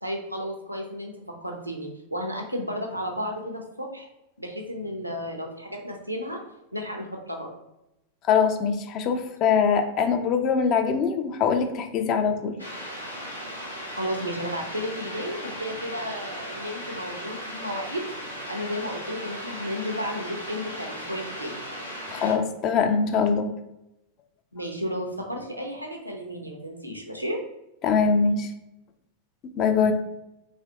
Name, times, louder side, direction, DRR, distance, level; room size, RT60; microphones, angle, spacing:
voice 1, 0.0-1.1 1.4-4.1 4.4-6.4 6.7-7.5 14.0-18.0 18.5-21.5 24.5-27.4 29.8-29.9, equal, 90° right, 2 dB, 0.6 m, -33 dB
voice 2, 8.3-12.5 22.1-23.5 27.8-28.5 29.6-29.9, left 6 dB, 35° left, 7 dB, 0.4 m, -23 dB
sound 1, 12.6-22.3, equal, 85° left, 0.7 m, -37 dB
3.2 x 2.9 x 2.7 m, 0.89 s
figure-of-eight pair, 90°, 0 cm